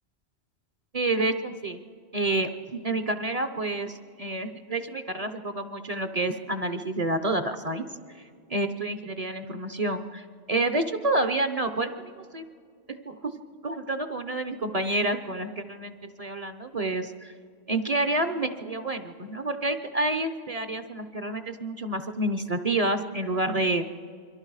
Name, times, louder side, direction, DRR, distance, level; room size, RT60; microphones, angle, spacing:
voice 1, 0.9-1.8 2.1-7.9 8.5-12.4 12.9-13.3 13.6-17.3 17.7-23.9, right 2 dB, 35° right, 7 dB, 0.9 m, -29 dB
28.0 x 22.5 x 4.8 m, 2.1 s
omnidirectional pair, 1.1 m